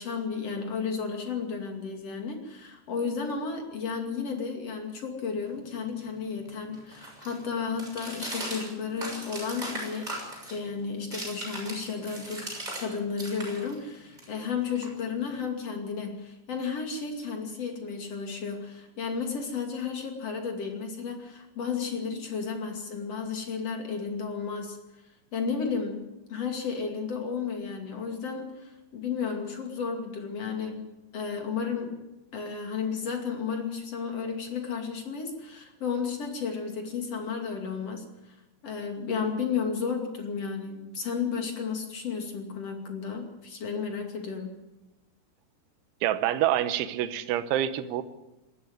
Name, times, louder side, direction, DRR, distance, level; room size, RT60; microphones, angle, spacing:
voice 1, 0.0-10.2 10.5-12.5 12.8-24.8 25.3-26.0 26.3-30.9 31.1-32.0 32.3-38.4 38.6-44.5, left 5 dB, 40° left, 3 dB, 2.6 m, -33 dB
sound 1, 5.5-12.9 13.1-15.3, right 1 dB, 10° right, 6.6 m, -40 dB
voice 2, 46.0-48.0, right 12 dB, 75° right, 11 dB, 3.2 m, -26 dB
19.0 x 14.5 x 9.5 m, 1.0 s
omnidirectional pair, 5.8 m